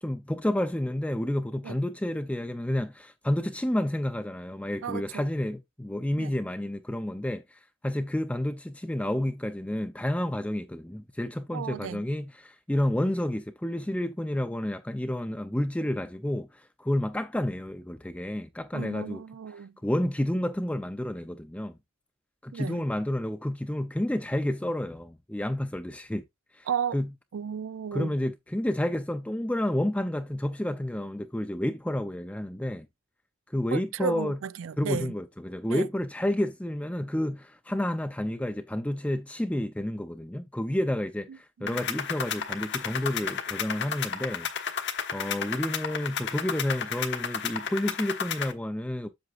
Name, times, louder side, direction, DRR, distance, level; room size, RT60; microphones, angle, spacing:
voice 1, 0.0-19.2 19.8-21.8 22.4-26.2 26.5-27.1 27.9-32.9 33.5-34.4 34.8-44.5 45.1-49.1, left 1 dB, 5° left, 0.5 m, -30 dB
voice 2, 4.8-5.2 6.2-6.3 11.5-12.0 18.7-19.7 22.5-22.9 26.7-27.0 27.3-28.1 33.7-35.1 35.7-35.9 41.6-41.8, right 7 dB, 65° right, 0.4 m, -34 dB
sound 1, 41.7-48.5, left 7 dB, 55° left, 1.2 m, -33 dB
7.8 x 7.0 x 2.4 m
head